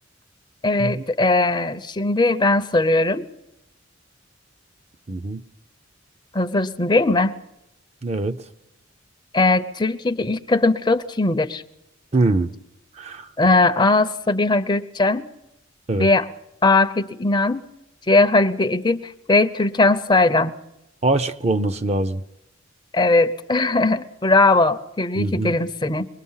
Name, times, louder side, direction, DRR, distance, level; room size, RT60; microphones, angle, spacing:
voice 1, 0.6-3.3 6.3-7.3 9.3-11.6 13.4-15.3 16.0-16.3 16.6-17.7 18.1-20.5 22.9-26.1, left 2 dB, 20° left, 0.7 m, -19 dB
voice 2, 5.1-5.4 8.0-8.4 12.1-12.5 13.0-13.3 15.9-16.1 21.0-22.2 25.2-25.5, right 2 dB, 30° right, 0.6 m, -22 dB
23.0 x 20.0 x 5.6 m
head